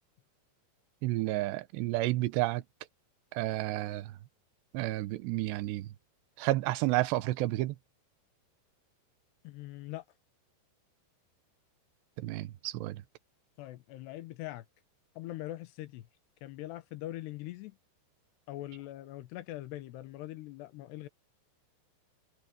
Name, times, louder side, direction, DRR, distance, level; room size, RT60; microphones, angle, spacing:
voice 1, 1.0-2.6 3.3-4.1 4.7-5.9 6.4-7.7 12.2-13.0, right 17 dB, 75° right, 2.9 m, -31 dB
voice 2, 9.4-10.0 13.6-14.7 15.2-16.1 16.4-17.8 18.5-21.1, left 15 dB, 75° left, 3.0 m, -42 dB
omnidirectional pair, 5.2 m